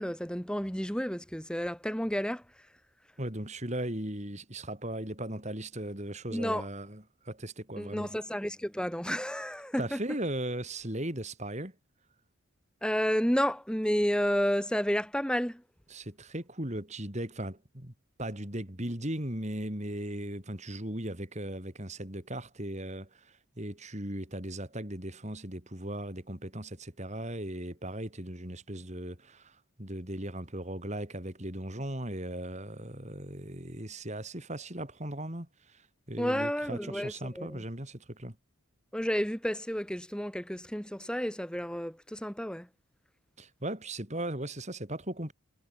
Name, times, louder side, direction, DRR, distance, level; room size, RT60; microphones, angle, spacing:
voice 1, 0.0-2.4 6.3-6.6 7.8-10.0 12.8-15.6 36.2-37.6 38.9-42.7, equal, 5° left, 1.9 m, -31 dB
voice 2, 3.2-8.2 9.8-11.7 15.9-17.9 18.2-35.8 36.1-38.4 43.4-45.3, right 1 dB, 30° right, 3.4 m, -37 dB
head